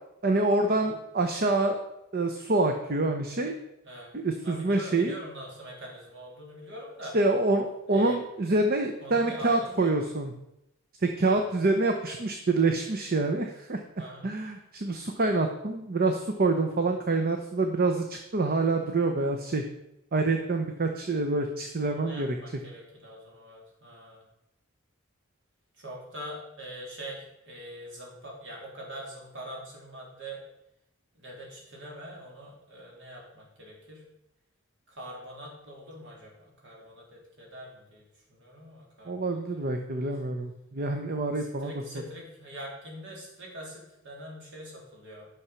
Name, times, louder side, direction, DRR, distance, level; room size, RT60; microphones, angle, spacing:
voice 1, 0.2-1.8 2.1-3.6 4.1-5.2 7.1-10.3 11.0-13.8 14.2-19.6 20.1-22.4 39.0-41.7, right 2 dB, 45° right, 5 dB, 0.8 m, -26 dB
voice 2, 4.4-7.2 7.9-8.2 9.0-10.1 11.2-11.4 14.0-14.3 21.8-24.2 25.8-30.4 31.1-34.0 34.9-38.0 38.3-39.4 41.3-45.3, equal, 60° right, -2 dB, 3.3 m, -43 dB
9.9 x 6.3 x 5.7 m, 0.87 s
head